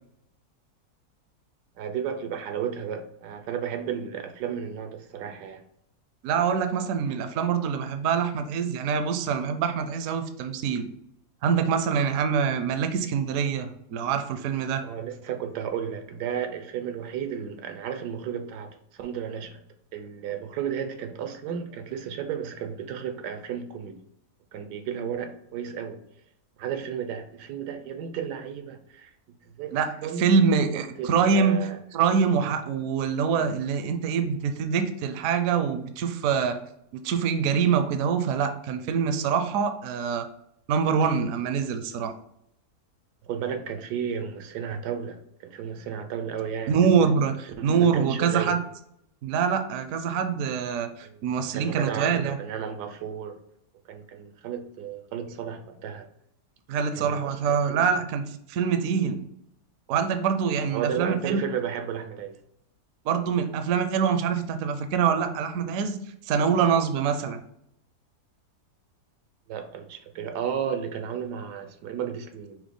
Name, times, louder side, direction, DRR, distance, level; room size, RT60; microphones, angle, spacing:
voice 1, 1.8-5.6 14.8-19.6 19.9-24.0 24.5-26.0 26.6-29.1 29.4-29.7 30.0-30.2 30.7-31.8 32.4-32.5 43.2-46.8 47.6-48.6 51.0-51.2 51.5-53.4 53.9-56.1 56.9-57.8 60.7-62.4 69.5-72.6, right 8 dB, 85° right, 7 dB, 1.2 m, -33 dB
voice 2, 6.2-10.8 11.4-14.8 29.7-29.9 30.2-31.6 31.9-36.6 37.0-40.3 40.7-42.1 46.7-48.6 49.2-52.4 56.7-58.2 58.5-59.2 59.9-61.4 63.0-66.0 66.3-67.4, right 6 dB, 70° right, 8 dB, 0.9 m, -25 dB
5.9 x 2.1 x 3.7 m, 0.75 s
omnidirectional pair, 1.7 m